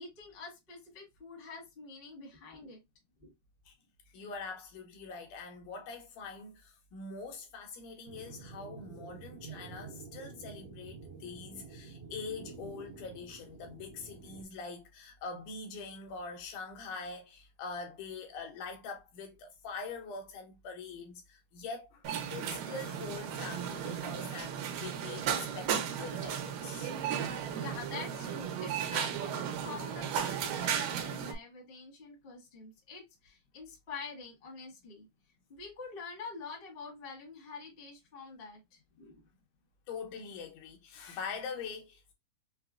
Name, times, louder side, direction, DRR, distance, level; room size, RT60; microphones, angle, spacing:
voice 1, 0.0-2.8 3.2-3.3 27.6-35.1 35.5-39.2, left 4 dB, 35° left, 0.9 m, -46 dB
voice 2, 4.1-26.9 39.9-42.1, left 4 dB, 75° left, 2.1 m, -44 dB
sound 1, 8.1-14.4, right 5 dB, 65° right, 1.7 m, -49 dB
sound 2, 22.0-31.3, right 8 dB, 85° right, 2.4 m, -35 dB
5.6 x 2.1 x 2.4 m
omnidirectional pair, 3.8 m